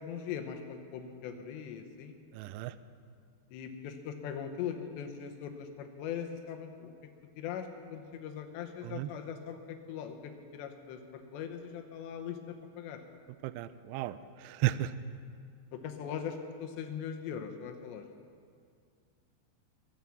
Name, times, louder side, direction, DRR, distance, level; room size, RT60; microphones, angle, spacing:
voice 1, 0.0-2.2 3.5-6.9 7.4-13.0 15.7-18.0, left 8 dB, 75° left, 5 dB, 3.0 m, -40 dB
voice 2, 2.3-2.7 8.8-9.1 13.4-14.9, right 15 dB, 85° right, 14 dB, 2.4 m, -34 dB
22.5 x 7.7 x 7.1 m, 2.2 s
omnidirectional pair, 5.4 m